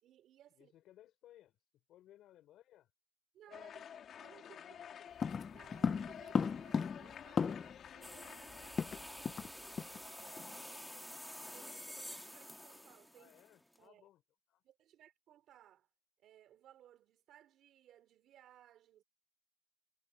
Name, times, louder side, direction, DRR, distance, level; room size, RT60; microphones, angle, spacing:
voice 1, 0.0-0.7 3.3-3.9 4.2-4.8 5.5-10.8 11.5-13.3 13.8-14.1 14.6-15.9 16.2-19.0, right 11 dB, 80° right, 4.3 m, -63 dB
voice 2, 0.5-2.9 3.5-3.7 4.4-5.2 13.1-14.2 14.5-14.6, left 13 dB, 85° left, 6.0 m, -63 dB
sound 1, 3.5-9.1, left 8 dB, 65° left, 3.1 m, -52 dB
sound 2, 5.2-7.9 8.1-8.2 8.5-9.5 9.8-10.0 10.4-10.6, left 6 dB, 45° left, 0.6 m, -36 dB
sound 3, 8.0-13.8, left 1 dB, 5° left, 1.8 m, -49 dB
cardioid pair, 90°, 0 cm